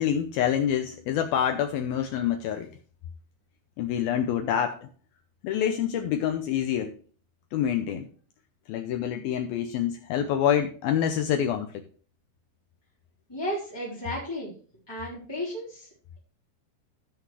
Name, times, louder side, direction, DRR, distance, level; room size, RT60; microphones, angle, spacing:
voice 1, 0.0-2.7 3.8-4.9 5.4-7.0 7.5-8.1 8.7-11.8, left 9 dB, 85° left, 2.1 m, -27 dB
voice 2, 13.3-14.5 14.9-15.9, equal, 5° left, 2.7 m, -33 dB
16.0 x 5.9 x 3.1 m
omnidirectional pair, 5.1 m